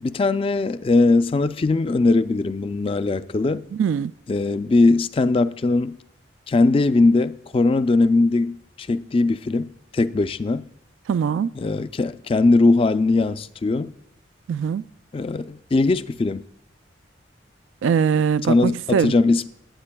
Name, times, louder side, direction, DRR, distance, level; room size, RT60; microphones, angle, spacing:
voice 1, 0.0-3.6 4.3-5.9 6.5-10.6 11.6-13.9 15.1-16.4 18.5-19.5, left 3 dB, 30° left, 0.3 m, -20 dB
voice 2, 3.7-4.1 11.1-11.5 14.5-14.9 17.8-19.1, right 7 dB, 85° right, 0.3 m, -21 dB
20.5 x 8.9 x 2.2 m
head